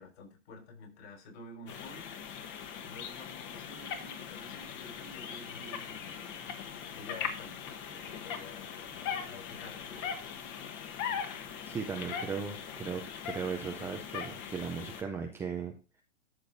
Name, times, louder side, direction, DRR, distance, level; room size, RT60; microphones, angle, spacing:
voice 1, 0.0-2.5 2.8-6.4 6.9-10.2, left 3 dB, 60° left, 5.4 m, -50 dB
sound 1, 1.7-15.0, left 7 dB, 30° left, 1.3 m, -40 dB
voice 2, 11.6-15.7, right 6 dB, 5° right, 0.4 m, -37 dB
12.5 x 6.7 x 2.6 m
hypercardioid pair, 130°, 39 cm